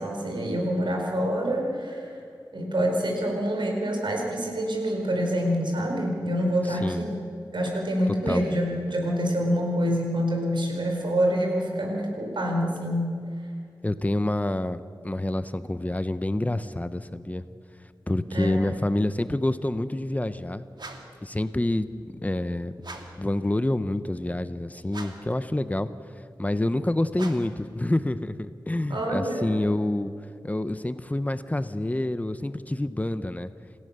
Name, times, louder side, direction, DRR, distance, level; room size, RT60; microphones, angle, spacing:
voice 1, 0.0-2.1 2.5-7.2 7.5-13.2 18.3-18.6 28.9-29.5, equal, 85° right, 1 dB, 4.9 m, -26 dB
voice 2, 6.7-7.0 8.1-8.4 13.8-17.4 18.1-20.7 21.2-21.9 22.2-22.7 23.2-25.9 26.4-30.1 30.4-33.5, left 1 dB, 20° left, 12 dB, 0.8 m, -27 dB
sound 1, 20.8-21.2 22.8-23.3 24.9-25.4 27.1-27.6, right 3 dB, 65° right, 2.3 m, -42 dB
28.5 x 16.0 x 6.8 m, 2.4 s
wide cardioid pair, 85°, 8 cm